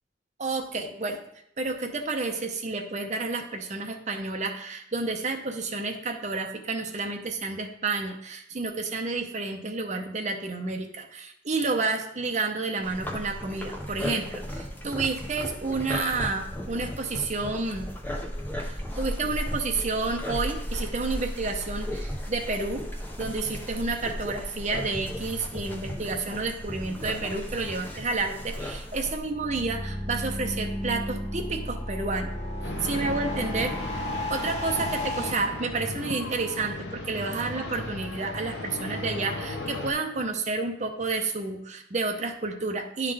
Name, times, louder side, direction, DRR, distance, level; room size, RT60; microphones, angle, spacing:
voice 1, 0.4-1.2 1.6-17.9 18.6-22.9 23.2-32.3 32.8-43.1, right 3 dB, 40° right, 4 dB, 0.7 m, -30 dB
sound 1, 12.8-29.2, equal, 10° left, 0.6 m, -35 dB
sound 2, 29.2-35.3, left 1 dB, 35° left, 1.0 m, -33 dB
sound 3, 32.6-39.9, left 2 dB, 70° left, 0.8 m, -36 dB
10.0 x 3.7 x 3.3 m, 0.75 s
head